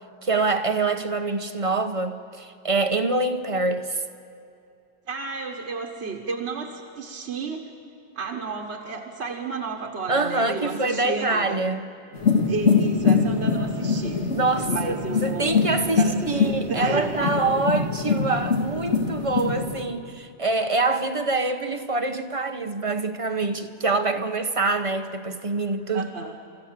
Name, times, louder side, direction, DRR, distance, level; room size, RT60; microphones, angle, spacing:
voice 1, 0.2-4.0 10.1-11.9 14.3-26.1, right 3 dB, 30° right, 0.8 m, -25 dB
voice 2, 5.1-7.6 8.1-11.6 12.5-14.2 14.7-17.4 25.9-26.3, right 4 dB, 70° right, 1.6 m, -32 dB
sound 1, 12.1-19.8, left 5 dB, 75° left, 2.1 m, -23 dB
30.0 x 14.5 x 7.5 m
omnidirectional pair, 1.2 m